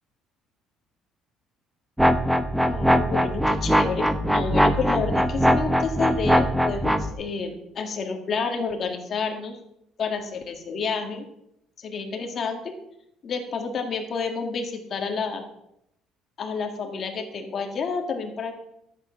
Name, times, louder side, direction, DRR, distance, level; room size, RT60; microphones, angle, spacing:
sound 1, 2.0-7.1, equal, 5° right, 0.7 m, -21 dB
voice 1, 2.6-9.6 10.0-11.3 11.8-12.7 13.2-15.5 16.4-18.5, left 4 dB, 35° left, 3 dB, 2.0 m, -29 dB
14.5 x 8.8 x 5.8 m, 0.79 s
cardioid pair, 175°, 0 cm